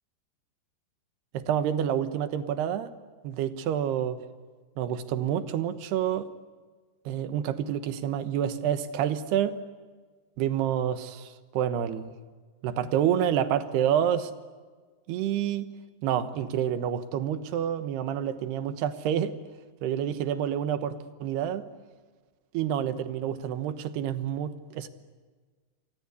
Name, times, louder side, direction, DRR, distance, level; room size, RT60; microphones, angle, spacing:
voice 1, 1.3-2.9 3.2-4.2 4.8-6.3 7.1-9.5 10.4-12.1 12.6-14.3 15.1-15.7 16.0-19.3 19.8-21.0 21.2-21.6 22.5-24.9, right 10 dB, 85° right, 10 dB, 3.3 m, -28 dB
28.0 x 25.0 x 8.4 m, 1.4 s
omnidirectional pair, 4.5 m